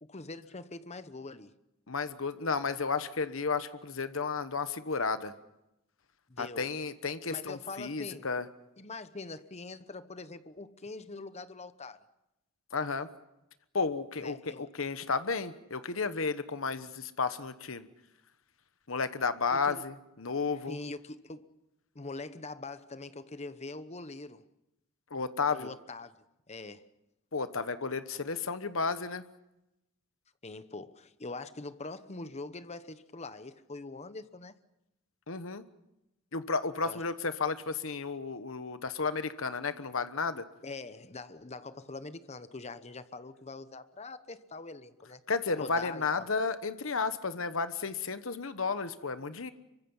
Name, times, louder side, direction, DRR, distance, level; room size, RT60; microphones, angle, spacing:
voice 1, 0.0-1.5 6.3-6.7 7.3-8.3 8.8-12.0 14.2-14.7 19.5-19.8 20.7-21.5 21.9-24.4 25.5-26.2 26.5-26.9 30.4-34.5 36.8-37.0 40.3-45.2 45.6-46.3, left 3 dB, 30° left, 1.0 m, -43 dB
voice 2, 1.9-5.3 6.4-8.5 12.7-13.1 13.7-17.9 18.9-20.8 25.1-25.7 27.3-29.2 35.3-35.6 36.3-40.4 45.3-49.5, left 4 dB, 70° left, 1.2 m, -32 dB
26.0 x 24.0 x 5.6 m
head